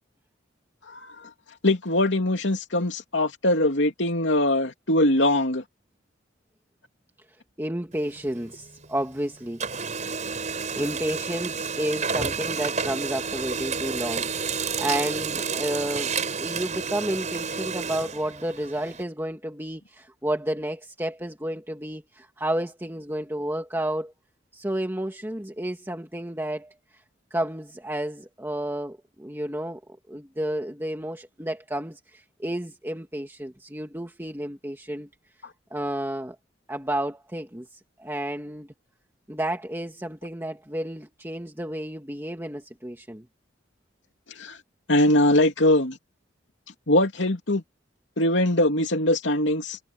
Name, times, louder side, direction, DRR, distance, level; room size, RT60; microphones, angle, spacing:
voice 1, 1.6-5.6 44.4-44.6 44.9-46.0 46.9-47.6 48.2-49.8, left 1 dB, 75° left, 2.8 m, -22 dB
voice 2, 7.6-9.6 10.7-24.1 24.5-27.0 27.3-29.8 30.1-35.1 35.7-36.4 36.7-38.7 39.3-43.3, right 1 dB, 10° right, 1.9 m, -31 dB
Printer, 7.9-9.2 9.5-19.0, right 5 dB, 40° right, 5.8 m, -30 dB
head